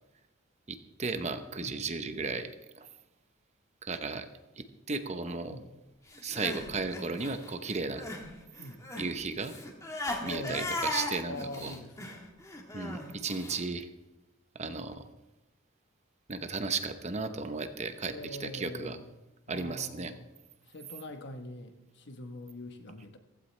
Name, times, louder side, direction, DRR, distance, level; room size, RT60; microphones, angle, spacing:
voice 1, 0.7-2.5 2.8-2.9 3.8-4.3 4.6-5.6 6.2-8.1 9.0-9.5 10.2-11.7 12.7-13.9 14.5-15.0 16.3-19.0 19.5-20.1, right 4 dB, 35° right, 9 dB, 0.8 m, -35 dB
Crying sobbing, 6.1-8.3 8.6-13.6, left 1 dB, 15° left, 1.5 m, -37 dB
voice 2, 10.2-10.7 11.2-12.3 18.0-19.1 19.5-20.3 20.7-23.2, left 1 dB, 60° left, 7 dB, 1.1 m, -43 dB
15.5 x 15.5 x 3.3 m, 0.98 s
head